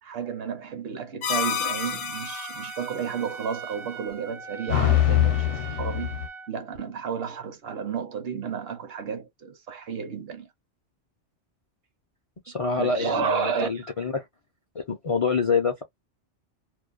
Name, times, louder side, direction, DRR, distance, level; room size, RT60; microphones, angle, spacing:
voice 1, 0.0-10.5 12.8-13.9, right 6 dB, 60° right, 0.8 m, -32 dB
sound 1, 1.2-2.9 4.7-6.3, left 11 dB, 80° left, 0.9 m, -25 dB
Trumpet, 1.3-6.5, right 5 dB, 40° right, 0.4 m, -40 dB
voice 2, 12.4-14.2 14.7-15.8, left 5 dB, 50° left, 0.4 m, -26 dB
2.5 x 2.0 x 2.4 m
omnidirectional pair, 1.2 m